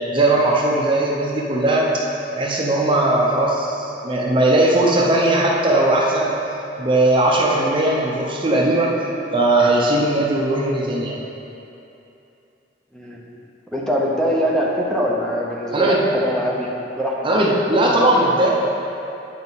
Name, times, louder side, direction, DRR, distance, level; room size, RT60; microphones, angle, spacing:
voice 1, 0.1-2.0 2.4-6.4 6.8-8.9 9.3-11.2 15.7-16.1 17.2-18.5, right 1 dB, 30° right, -2 dB, 0.7 m, -18 dB
voice 2, 13.7-17.2, equal, 5° left, -4 dB, 0.8 m, -22 dB
9.2 x 5.3 x 4.1 m, 2.8 s
head